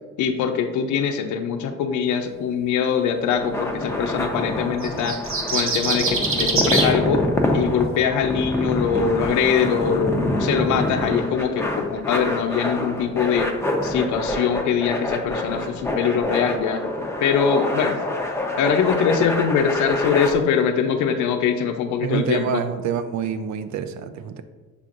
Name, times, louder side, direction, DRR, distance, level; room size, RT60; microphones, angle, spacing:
voice 1, 0.2-5.2 5.5-7.2 7.5-13.5 13.8-16.8 17.2-18.0 18.6-22.6, left 7 dB, 75° left, 6 dB, 0.5 m, -22 dB
sound 1, 3.3-20.3, left 1 dB, 10° left, 0.6 m, -26 dB
sound 2, 4.8-6.9, right 3 dB, 45° right, 0.8 m, -23 dB
voice 2, 22.0-24.4, right 8 dB, 70° right, 11 dB, 0.5 m, -26 dB
5.8 x 3.6 x 2.5 m, 1.3 s
cardioid pair, 90°, 30 cm